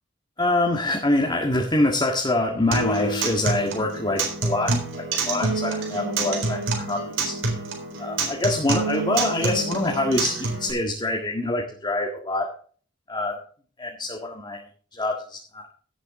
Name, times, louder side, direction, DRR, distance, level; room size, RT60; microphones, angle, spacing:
voice 1, 0.4-4.7 5.1-7.3 8.0-12.5 13.1-13.3 13.8-14.6 15.0-15.7, left 2 dB, 25° left, 0 dB, 1.8 m, -25 dB
Acoustic guitar, 2.7-10.7, right 3 dB, 80° right, 4.1 m, -27 dB
16.5 x 7.5 x 3.7 m, 0.43 s
head